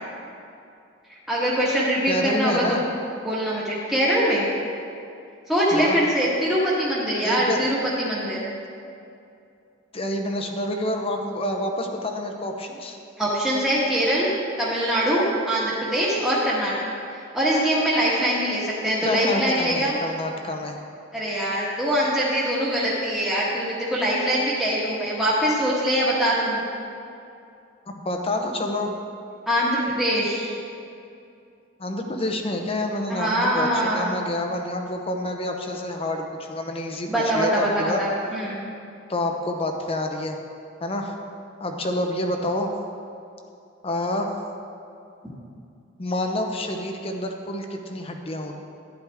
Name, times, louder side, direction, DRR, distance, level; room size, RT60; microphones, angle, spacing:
voice 1, 1.1-2.8 3.2-4.5 5.5-8.4 13.2-16.7 17.3-19.9 21.1-26.6 29.5-30.5 33.1-34.2 37.1-38.6, equal, ahead, -8 dB, 1.4 m, -23 dB
voice 2, 2.1-2.9 5.7-6.0 7.2-7.7 9.9-13.0 19.0-20.8 27.9-28.9 31.8-37.1 37.3-38.0 39.1-40.4 40.8-41.2 41.6-42.7 43.8-44.3 46.0-48.6, left 1 dB, 30° left, 3 dB, 0.8 m, -28 dB
11.5 x 10.0 x 3.5 m, 2.5 s
head